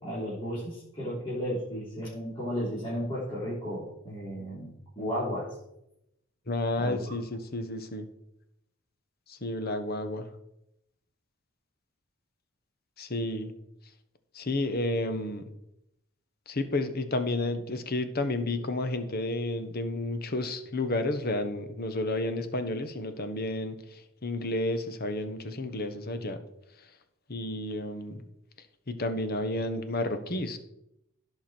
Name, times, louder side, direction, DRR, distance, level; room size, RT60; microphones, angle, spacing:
voice 1, 0.0-5.5 6.8-7.1, equal, 25° left, -8 dB, 3.7 m, -34 dB
voice 2, 6.5-8.1 9.3-10.3 13.0-13.5 14.3-15.5 16.5-26.4 26.8-26.9 27.3-28.2 28.9-30.6, left 2 dB, 45° left, 9 dB, 1.1 m, -31 dB
16.5 x 5.9 x 4.5 m, 0.82 s
head